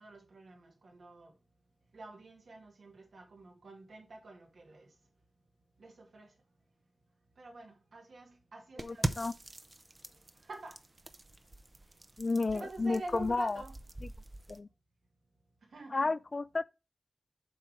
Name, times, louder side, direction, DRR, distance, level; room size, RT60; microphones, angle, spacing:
voice 1, 0.0-1.3 1.9-4.9 5.8-6.3 7.4-9.3 10.4-10.8 12.5-13.7 15.7-16.2, right 2 dB, 85° right, 2.1 m, -47 dB
voice 2, 8.8-9.3 12.2-13.6 14.5-14.7 15.9-16.6, left 3 dB, 50° left, 0.3 m, -32 dB
sound 1, 8.8-14.6, right 2 dB, 30° right, 0.6 m, -42 dB
7.7 x 3.3 x 6.0 m
wide cardioid pair, 85°, 0 cm